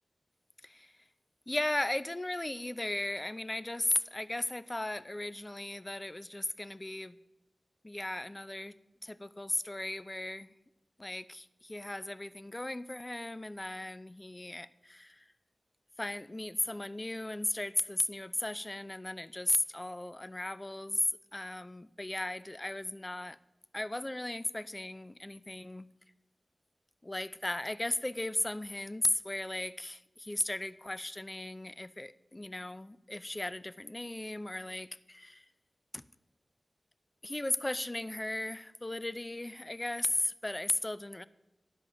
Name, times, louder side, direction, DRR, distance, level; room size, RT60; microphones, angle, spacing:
voice 1, 0.6-0.9 1.5-7.2 7.8-8.7 9.0-10.5 11.0-15.2 16.0-23.4 23.7-25.9 27.0-35.5 35.9-36.0 37.2-41.2, left 1 dB, 25° left, 0.5 m, -36 dB
11.0 x 5.3 x 7.4 m
cardioid pair, 45°, 0 cm